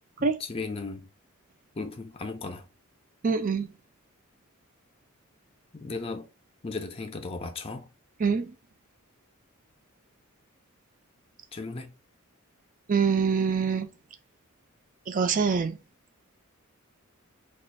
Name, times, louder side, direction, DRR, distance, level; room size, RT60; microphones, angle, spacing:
voice 1, 0.2-1.1 1.8-2.7 5.7-6.3 6.6-7.9 11.5-11.9, left 3 dB, 25° left, 0.5 m, -36 dB
voice 2, 3.2-3.7 8.2-8.5 12.9-13.9 15.1-15.8, right 5 dB, 40° right, 0.4 m, -24 dB
2.5 x 2.4 x 4.0 m
head